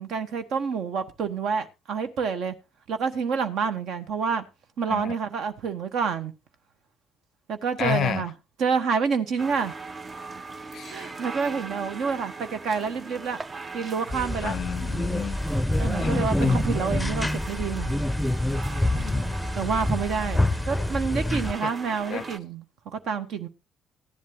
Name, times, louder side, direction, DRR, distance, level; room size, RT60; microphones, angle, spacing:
voice 1, 0.0-2.5 2.9-4.4 4.8-6.3 7.5-8.3 8.6-9.7 10.9-13.4 13.7-14.6 15.8-17.9 19.5-22.6 22.9-23.5, right 5 dB, 55° right, 1.2 m, -28 dB
voice 2, 7.8-8.2 10.7-11.1 14.4-15.4 16.0-16.6 18.9-19.4 21.6-21.7 22.1-22.2, left 10 dB, 50° left, 0.5 m, -31 dB
sound 1, 9.4-22.4, right 4 dB, 30° right, 0.6 m, -40 dB
sound 2, 14.1-21.5, left 1 dB, 5° left, 0.7 m, -26 dB
15.0 x 10.5 x 2.8 m
figure-of-eight pair, 50°, 0 cm